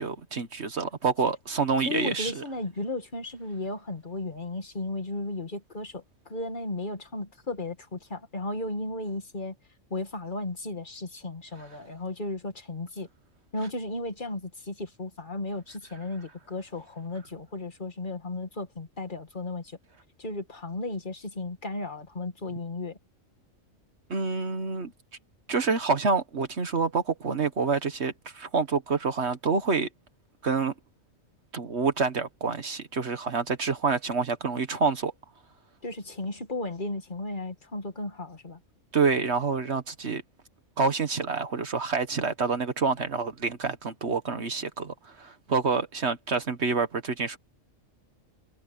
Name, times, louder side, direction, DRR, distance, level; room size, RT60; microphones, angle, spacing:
voice 1, 0.0-2.4 24.1-24.9 25.5-29.9 30.4-30.7 31.5-35.1 38.9-40.2 40.8-47.4, right 4 dB, 55° right, 1.5 m, -27 dB
voice 2, 1.8-9.6 9.9-13.1 13.5-19.8 20.2-23.0 35.8-38.6, left 2 dB, 35° left, 2.2 m, -35 dB
omnidirectional pair, 1.4 m